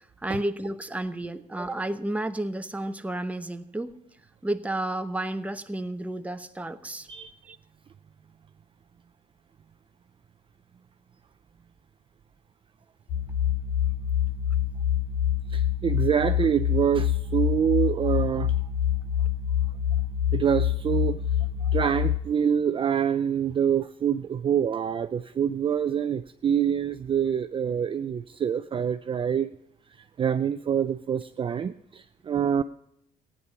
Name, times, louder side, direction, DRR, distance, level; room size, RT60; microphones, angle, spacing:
voice 1, 0.2-3.9 4.4-7.1 7.5-7.6, right 1 dB, 10° right, 8 dB, 0.9 m, -31 dB
sound 1, 13.1-22.2, left 10 dB, 70° left, 3.2 m, -26 dB
voice 2, 15.5-18.5 20.3-21.2 21.7-29.5 30.2-32.6, right 8 dB, 30° right, 10 dB, 0.5 m, -26 dB
15.5 x 9.8 x 5.9 m, 0.75 s
cardioid pair, 110°, 17 cm